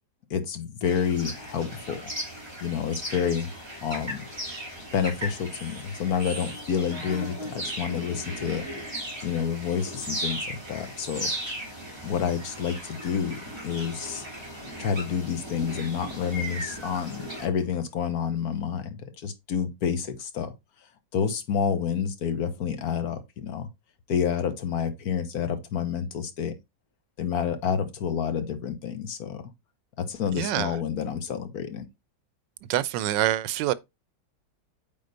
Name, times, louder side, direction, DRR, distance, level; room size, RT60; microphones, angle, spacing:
voice 1, 0.3-2.1 2.6-4.2 4.9-8.6 9.2-11.3 12.0-14.3 14.8-20.5 21.1-23.7 24.1-26.5 27.2-29.4 30.0-31.8, left 7 dB, 60° left, 1.4 m, -29 dB
sound 1, 0.8-17.5, equal, 15° right, 3.0 m, -37 dB
voice 2, 30.4-30.7 32.7-33.7, right 13 dB, 85° right, 1.3 m, -25 dB
8.7 x 3.8 x 3.9 m
omnidirectional pair, 1.9 m